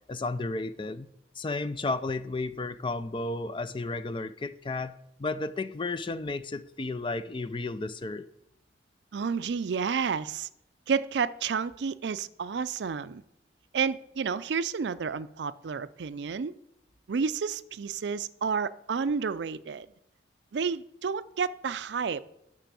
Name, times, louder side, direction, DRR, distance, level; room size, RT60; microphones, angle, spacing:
voice 1, 0.1-8.3, left 3 dB, 30° left, 0.5 m, -33 dB
voice 2, 9.1-10.5 10.9-13.2 13.7-16.5 17.1-19.9 20.5-22.2, right 6 dB, 70° right, 0.4 m, -30 dB
10.5 x 6.1 x 7.4 m
head